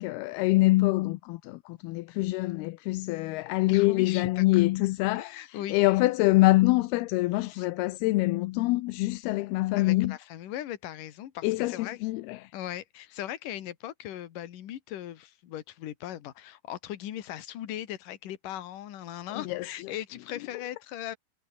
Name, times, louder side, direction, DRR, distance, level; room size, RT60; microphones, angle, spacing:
voice 1, 0.0-10.2 11.4-12.5 19.3-19.9, left 20 dB, 80° left, 2.4 m, -25 dB
voice 2, 3.7-4.6 5.1-5.8 7.4-7.7 9.8-12.0 12.5-21.2, left 12 dB, 60° left, 2.8 m, -39 dB
omnidirectional pair, 5.0 m